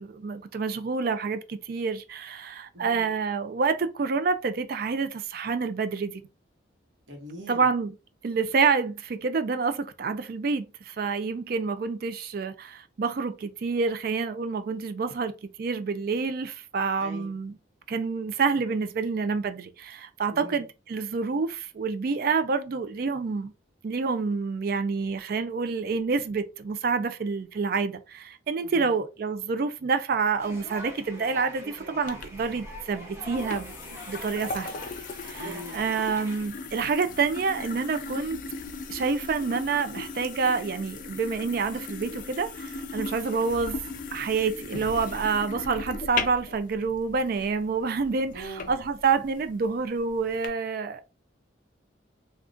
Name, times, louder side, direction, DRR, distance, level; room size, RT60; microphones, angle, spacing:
voice 1, 0.0-6.2 7.5-7.9 8.2-15.3 15.6-17.6 17.9-23.5 23.8-33.7 34.1-34.7 35.2-38.4 38.9-43.8 44.1-51.1, right 5 dB, 50° right, 0.3 m, -28 dB
voice 2, 2.7-3.1 7.1-7.7 17.0-17.4 20.3-20.7 28.6-29.0 35.4-35.8 48.3-48.7, equal, 75° right, 1.1 m, -41 dB
sound 1, 30.4-36.5, equal, 15° right, 0.7 m, -43 dB
sound 2, 32.1-50.5, left 4 dB, 45° left, 0.4 m, -38 dB
3.6 x 2.3 x 2.5 m
head